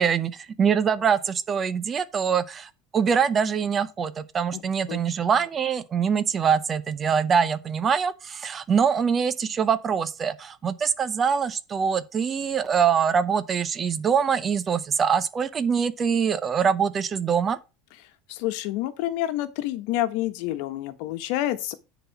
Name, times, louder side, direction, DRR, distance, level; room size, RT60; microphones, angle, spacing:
voice 1, 0.0-17.6, right 7 dB, 25° right, 0.7 m, -24 dB
voice 2, 18.3-21.7, left 14 dB, 65° left, 1.2 m, -28 dB
10.0 x 4.1 x 5.9 m
supercardioid pair, 135°, 0 cm